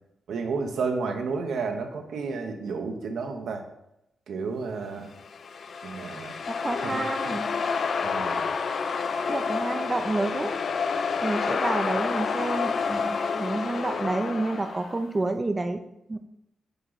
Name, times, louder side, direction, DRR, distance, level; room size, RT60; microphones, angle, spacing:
voice 1, 0.3-3.6 4.3-5.1 5.8-6.4 6.8-7.3 8.0-8.5, right 4 dB, 80° right, 5 dB, 0.8 m, -31 dB
sound 1, 5.2-15.0, left 5 dB, 60° left, 0.4 m, -29 dB
voice 2, 6.5-7.5 9.3-10.6 11.2-15.8 16.1-16.2, right 2 dB, 25° right, 7 dB, 0.4 m, -29 dB
8.0 x 3.0 x 3.9 m, 0.84 s
cardioid pair, 85°, 0 cm